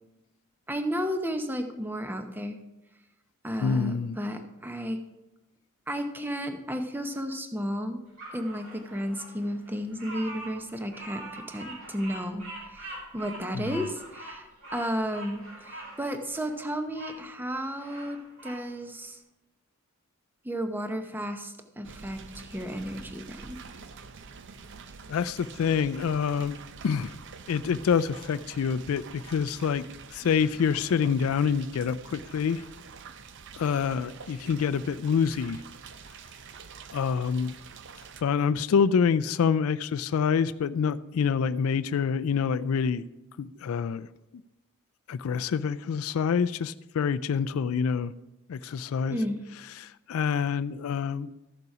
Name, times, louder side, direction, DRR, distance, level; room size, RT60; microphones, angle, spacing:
voice 1, 0.7-2.6 3.4-5.0 5.9-8.0 8.3-19.2 20.4-23.6 49.1-49.4, equal, 10° right, 6 dB, 0.8 m, -33 dB
voice 2, 3.6-4.2 13.5-13.7 25.1-26.6 26.8-27.1 27.5-32.6 33.6-35.6 36.9-37.5 38.2-43.1 43.4-44.1 45.1-48.1 48.5-49.2 49.8-51.3, left 6 dB, 70° left, 13 dB, 0.3 m, -26 dB
Bird vocalization bird call bird song, 8.2-17.2 17.6-18.6, right 2 dB, 80° right, 3.9 m, -43 dB
sound 1, 21.8-38.2, right 5 dB, 55° right, 0.6 m, -47 dB
13.0 x 6.8 x 4.8 m, 0.97 s
head